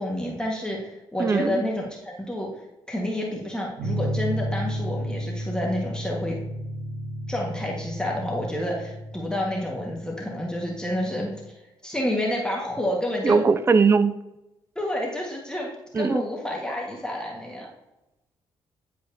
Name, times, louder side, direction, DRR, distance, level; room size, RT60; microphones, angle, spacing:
voice 1, 0.0-2.5 2.9-6.4 7.3-11.3 11.8-13.4 14.7-15.7 16.0-17.7, left 1 dB, 10° left, -2 dB, 1.5 m, -29 dB
voice 2, 1.2-1.6 13.2-14.2 15.9-16.2, right 5 dB, 25° right, 13 dB, 0.4 m, -20 dB
sound 1, 3.8-11.4, equal, 75° right, 1.8 m, -33 dB
10.0 x 4.8 x 2.7 m, 0.95 s
cardioid pair, 75°, 10 cm